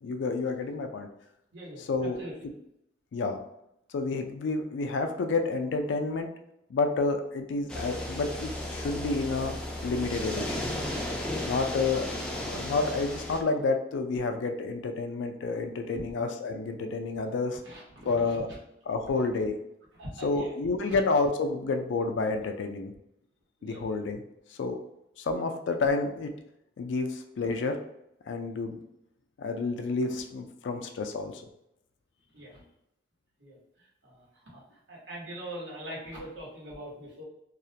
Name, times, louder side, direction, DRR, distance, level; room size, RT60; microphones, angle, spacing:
voice 1, 0.0-1.1 1.8-2.2 3.1-3.4 3.9-6.3 6.7-9.6 9.8-10.6 11.4-12.1 12.4-17.6 18.1-18.5 18.9-19.6 20.2-22.9 23.6-24.2 24.5-24.8 25.2-26.3 26.8-27.8 28.3-28.8 29.4-31.4, left 3 dB, 85° left, 6 dB, 0.4 m, -29 dB
sound 1, 7.7-13.4, left 1 dB, 5° left, 0.3 m, -34 dB
voice 2, 17.6-18.6 20.0-20.5 20.9-21.0 23.6-23.9 32.3-32.6 33.4-33.6 34.0-34.2 34.5-34.6 34.9-37.2, right 1 dB, 85° right, -5 dB, 1.0 m, -42 dB
2.3 x 2.1 x 2.7 m, 0.82 s
head